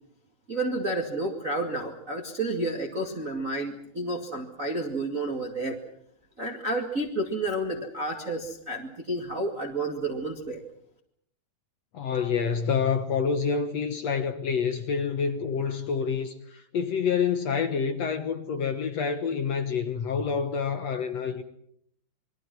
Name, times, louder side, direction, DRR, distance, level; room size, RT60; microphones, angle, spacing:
voice 1, 0.5-5.8 6.4-10.6, right 2 dB, 30° right, 1.7 m, -30 dB
voice 2, 11.9-21.4, left 6 dB, 65° left, 1.7 m, -27 dB
27.0 x 22.5 x 6.1 m
omnidirectional pair, 4.6 m